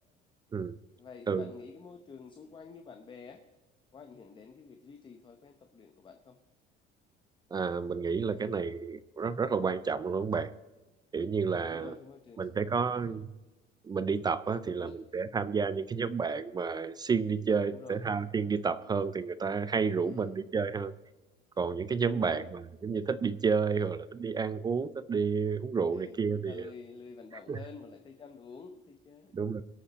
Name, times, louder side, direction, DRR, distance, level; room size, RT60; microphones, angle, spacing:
voice 1, 1.0-3.4 3.9-6.4 8.3-8.5 11.6-13.1 14.6-14.9 17.6-18.0 20.0-20.4 22.0-22.5 23.8-23.9 25.9-29.3, left 5 dB, 20° left, 6 dB, 0.8 m, -49 dB
voice 2, 7.5-10.5 11.1-11.9 12.4-13.3 13.8-20.9 21.6-26.7 27.5-27.6 29.3-29.6, right 5 dB, 20° right, 16 dB, 0.4 m, -30 dB
23.0 x 8.5 x 4.1 m, 1.2 s
cardioid pair, 150°, 21 cm